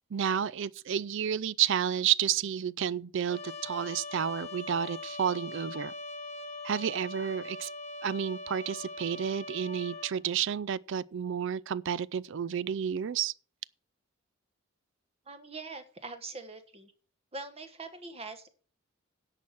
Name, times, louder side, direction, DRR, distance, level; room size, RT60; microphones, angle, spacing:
voice 1, 0.1-5.9 6.6-7.7 8.0-13.3, right 8 dB, 60° right, 0.4 m, -31 dB
Trumpet, 3.3-10.2, left 3 dB, 30° left, 1.1 m, -42 dB
voice 2, 15.3-16.9 17.3-18.5, right 3 dB, 30° right, 1.3 m, -43 dB
10.5 x 5.9 x 7.2 m
head